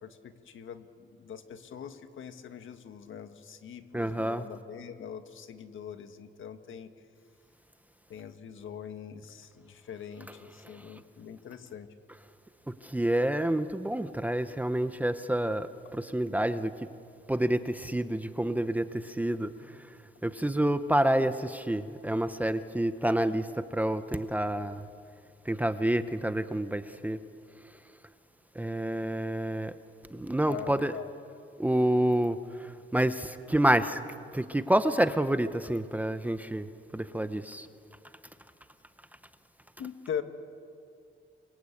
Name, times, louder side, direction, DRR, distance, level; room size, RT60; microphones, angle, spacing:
voice 1, 0.0-6.9 8.1-11.9 30.5-31.1 39.8-40.2, left 8 dB, 70° left, 8 dB, 1.7 m, -42 dB
voice 2, 3.9-4.4 12.8-16.7 17.3-19.5 20.2-24.8 25.5-27.2 28.6-29.7 30.1-30.9 31.6-34.0 34.3-36.7 36.9-37.7, right 1 dB, 5° right, 11 dB, 0.7 m, -28 dB
28.5 x 23.0 x 8.6 m, 2.4 s
wide cardioid pair, 170°, 21 cm